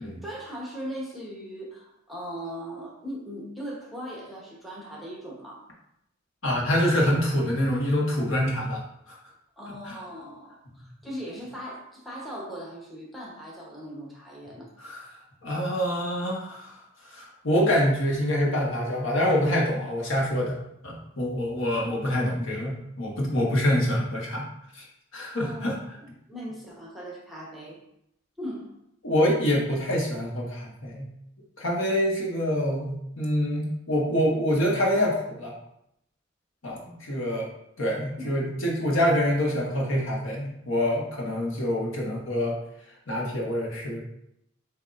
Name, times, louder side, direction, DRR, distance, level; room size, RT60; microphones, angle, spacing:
voice 1, 0.0-5.6 9.6-14.7 25.3-25.8 26.3-27.8 28.4-28.7 38.2-38.4, equal, ahead, -4 dB, 0.9 m, -39 dB
voice 2, 6.4-8.8 9.1-9.2 9.8-10.0 14.8-15.1 15.4-24.4 24.7-24.8 25.1-25.7 29.0-31.1 31.6-35.5 36.6-37.5 37.8-42.6 43.1-44.0, equal, 80° left, -2 dB, 1.3 m, -26 dB
7.9 x 2.7 x 2.5 m, 0.78 s
head